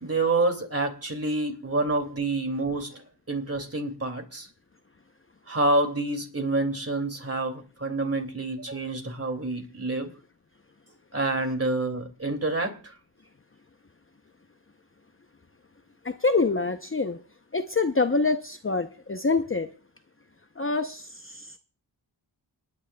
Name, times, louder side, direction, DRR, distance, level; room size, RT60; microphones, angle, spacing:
voice 1, 0.0-2.9 3.3-4.5 5.5-10.1 11.1-12.8, right 2 dB, 30° right, 2.5 m, -27 dB
voice 2, 16.0-17.2 17.5-19.7 20.6-21.6, left 3 dB, 30° left, 0.7 m, -26 dB
28.5 x 9.8 x 2.3 m
wide cardioid pair, 65°, 45 cm